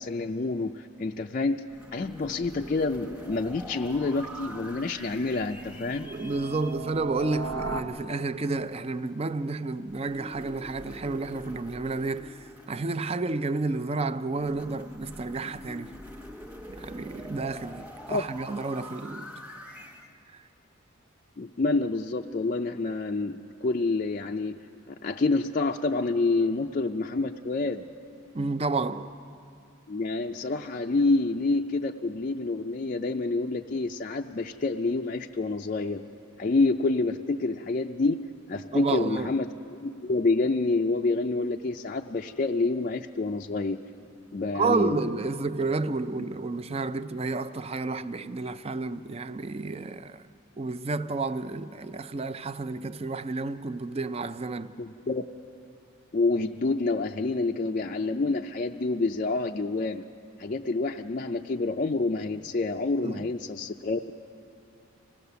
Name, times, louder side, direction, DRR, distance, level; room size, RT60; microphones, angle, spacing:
voice 1, 0.0-1.6 1.9-6.1 18.1-18.2 21.4-24.6 24.9-27.8 29.9-36.0 36.4-43.8 44.3-45.0 54.8-55.2 56.1-60.0 60.4-64.1, left 3 dB, 40° left, 0.4 m, -28 dB
sound 1, 1.7-6.8 9.9-13.7 14.4-20.1, equal, 10° right, 1.1 m, -45 dB
sound 2, 2.2-7.8, right 3 dB, 70° right, 1.1 m, -40 dB
voice 2, 6.0-12.3 12.7-15.9 16.7-19.3 28.3-29.1 38.7-39.3 44.5-50.2 50.6-54.7 63.0-63.3, right 3 dB, 30° right, 0.4 m, -31 dB
25.0 x 17.5 x 6.9 m
head